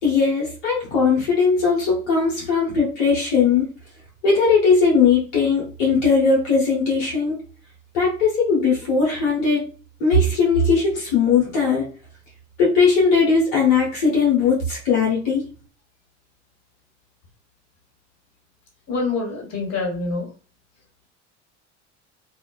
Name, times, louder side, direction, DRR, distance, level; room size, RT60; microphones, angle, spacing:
voice 1, 0.0-3.7 4.2-7.4 7.9-9.6 10.0-11.9 12.6-15.4, left 4 dB, 80° left, -4 dB, 1.0 m, -19 dB
voice 2, 18.9-20.3, left 3 dB, 45° left, -1 dB, 1.4 m, -26 dB
2.4 x 2.3 x 2.3 m, 0.36 s
hypercardioid pair, 70°, 36 cm